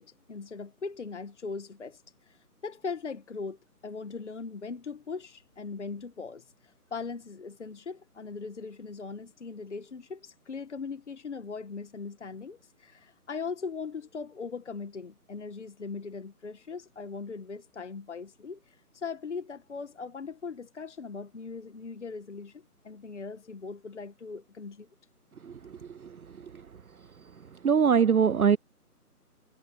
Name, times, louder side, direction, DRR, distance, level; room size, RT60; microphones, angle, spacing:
voice 1, 0.0-3.6 3.8-24.9, left 4 dB, 45° left, 1.7 m, -40 dB
voice 2, 27.6-28.6, right 7 dB, 65° right, 0.7 m, -21 dB
figure-of-eight pair, 150°, 47 cm